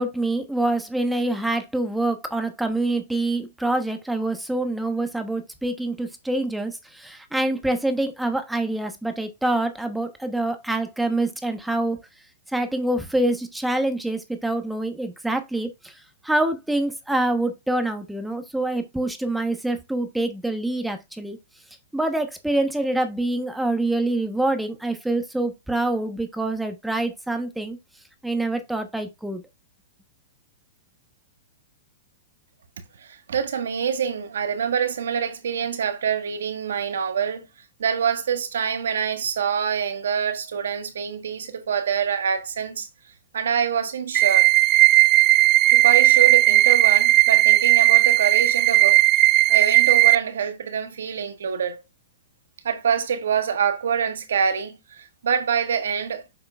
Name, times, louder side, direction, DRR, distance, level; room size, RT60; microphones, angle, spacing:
voice 1, 0.0-12.0 12.5-16.0 16.2-21.4 21.9-27.8 28.2-29.4, right 2 dB, 5° right, 1.0 m, -26 dB
voice 2, 33.0-37.5 37.8-42.9 43.3-44.5 45.7-49.0 49.5-51.8 52.6-56.2, right 7 dB, 80° right, 1.5 m, -25 dB
sound 1, 44.1-50.1, right 19 dB, 35° right, 0.5 m, -16 dB
7.4 x 5.7 x 2.4 m
hypercardioid pair, 130°, 0 cm